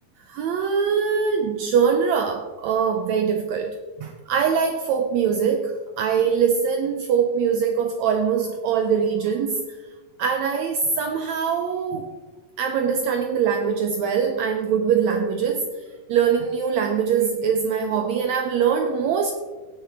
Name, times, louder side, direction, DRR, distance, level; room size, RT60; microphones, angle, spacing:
voice 1, 0.3-9.8 10.2-12.1 12.6-19.3, right 6 dB, 90° right, 5 dB, 1.5 m, -23 dB
17.5 x 6.6 x 3.5 m, 1.3 s
omnidirectional pair, 4.0 m